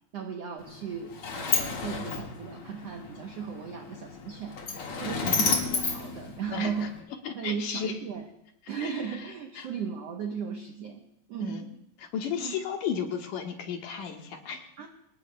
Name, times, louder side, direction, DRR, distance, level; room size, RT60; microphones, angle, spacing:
voice 1, 0.1-4.6 5.0-6.9 7.3-8.3 8.7-11.0 11.3-11.7 12.4-12.5 14.8-14.9, right 7 dB, 75° right, 3 dB, 1.5 m, -36 dB
Sliding door, 0.6-7.0, left 5 dB, 45° left, 2.3 m, -32 dB
voice 2, 5.0-5.5 6.5-6.9 7.2-8.0 8.8-9.0 9.6-9.7 11.4-11.7 12.1-14.6, left 7 dB, 70° left, 3 dB, 2.7 m, -34 dB
25.5 x 19.0 x 2.2 m, 0.77 s
omnidirectional pair, 4.1 m